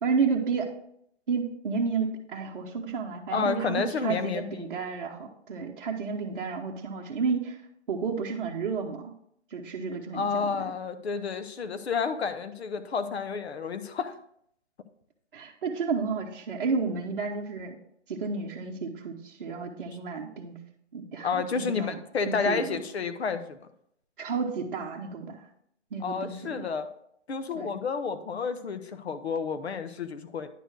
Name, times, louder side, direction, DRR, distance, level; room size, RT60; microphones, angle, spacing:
voice 1, 0.0-0.7 1.3-7.6 7.9-9.1 9.5-10.7 15.3-17.8 18.1-20.6 20.9-22.0 22.3-22.8 24.2-25.4 25.9-26.6 27.5-27.8, right 5 dB, 45° right, 0 dB, 0.9 m, -31 dB
voice 2, 3.3-4.7 10.1-14.1 19.9-20.0 21.2-23.6 26.0-26.9 27.3-30.5, left 5 dB, 60° left, 10 dB, 0.9 m, -30 dB
10.0 x 4.4 x 4.6 m, 0.71 s
hypercardioid pair, 165°, 35 cm